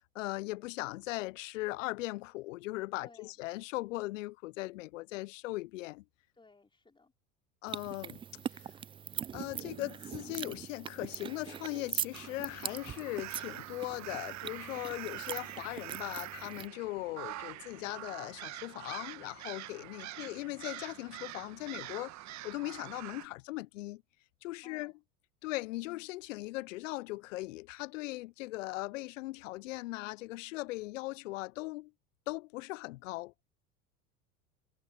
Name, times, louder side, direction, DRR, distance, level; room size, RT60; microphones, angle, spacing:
voice 1, 0.1-6.0 7.6-8.2 8.5-8.7 9.3-22.1 22.4-24.0 24.4-24.9 25.4-31.9 32.3-33.3, left 20 dB, 65° left, 0.6 m, -39 dB
voice 2, 3.0-3.3 6.3-7.1 14.7-15.1 20.0-20.4 24.6-24.9, left 3 dB, 10° left, 4.2 m, -60 dB
sound 1, 7.7-16.7, right 8 dB, 15° right, 0.3 m, -42 dB
sound 2, 12.1-23.3, right 16 dB, 40° right, 1.5 m, -45 dB
hypercardioid pair, 85°, 41 cm